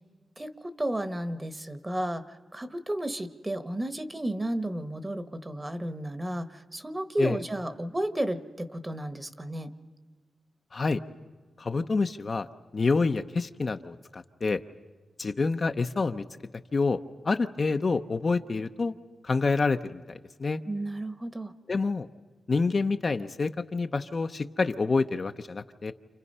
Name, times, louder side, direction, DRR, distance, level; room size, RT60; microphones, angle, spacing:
voice 1, 0.4-2.2 2.5-9.7 20.7-21.5, right 1 dB, 15° right, 10 dB, 1.2 m, -32 dB
voice 2, 10.7-11.0 11.6-12.5 12.7-14.6 15.2-16.3 16.7-17.0 17.2-19.0 19.2-20.6 21.7-22.1 22.5-25.9, left 4 dB, 40° left, 7 dB, 0.7 m, -27 dB
29.5 x 28.5 x 5.5 m, 1.4 s
wide cardioid pair, 105°, 0 cm